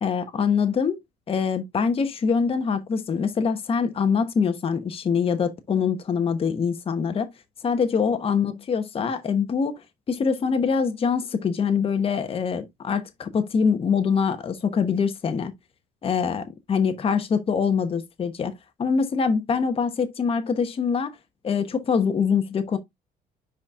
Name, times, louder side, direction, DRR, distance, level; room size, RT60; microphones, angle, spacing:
voice 1, 0.0-1.0 1.3-7.3 7.6-9.7 10.1-15.5 16.0-18.5 18.8-21.1 21.4-22.8, left 6 dB, 35° left, 0.9 m, -24 dB
10.5 x 4.1 x 2.4 m
cardioid pair, 110°, 17 cm